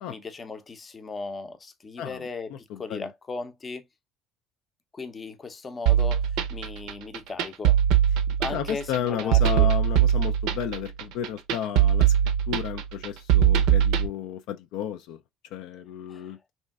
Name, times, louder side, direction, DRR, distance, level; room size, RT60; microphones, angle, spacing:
voice 1, 0.1-3.8 4.9-7.8 8.3-9.7 16.1-16.3, left 4 dB, 30° left, 0.5 m, -37 dB
voice 2, 2.0-2.3 2.7-3.1 8.5-15.2 15.5-16.5, left 9 dB, 75° left, 0.3 m, -33 dB
sound 1, 5.9-14.1, right 10 dB, 80° right, 0.5 m, -21 dB
3.0 x 2.6 x 2.3 m
cardioid pair, 105°, 0 cm